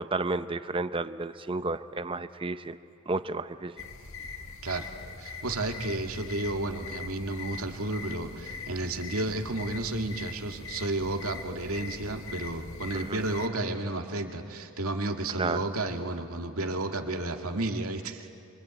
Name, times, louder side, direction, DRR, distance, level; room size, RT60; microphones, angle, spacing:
voice 1, 0.0-2.8 3.1-3.8 12.9-13.2 15.4-15.6, right 3 dB, 25° right, 12 dB, 0.6 m, -31 dB
sound 1, 3.8-13.5, left 4 dB, 70° left, 1.6 m, -42 dB
voice 2, 5.2-18.3, right 2 dB, 80° right, 4 dB, 2.1 m, -32 dB
25.5 x 25.5 x 8.9 m, 2.5 s
head